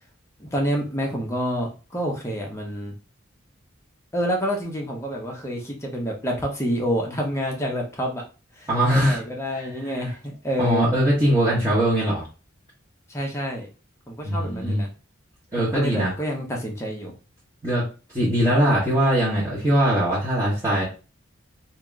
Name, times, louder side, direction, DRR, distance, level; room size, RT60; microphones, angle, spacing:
voice 1, 0.4-2.9 4.1-8.2 8.6-10.9 13.1-13.7 14.1-14.9 15.6-17.1, equal, 15° left, -1 dB, 0.8 m, -28 dB
voice 2, 8.7-9.2 9.5-9.7 10.6-12.2 14.2-14.8 15.5-16.1 17.6-17.8 18.1-20.8, equal, 15° right, -9 dB, 1.4 m, -21 dB
2.9 x 2.9 x 3.6 m, 0.33 s
head